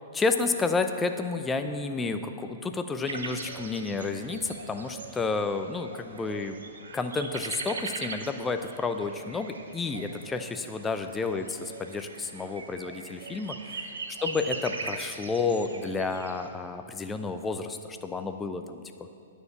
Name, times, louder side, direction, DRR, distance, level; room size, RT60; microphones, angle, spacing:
voice 1, 0.1-6.6 6.9-13.6 14.2-19.1, left 4 dB, 15° left, 8 dB, 0.6 m, -31 dB
sound 1, 3.1-16.5, right 4 dB, 70° right, 0.9 m, -41 dB
9.6 x 6.5 x 7.1 m, 2.4 s
figure-of-eight pair, 110°, 0 cm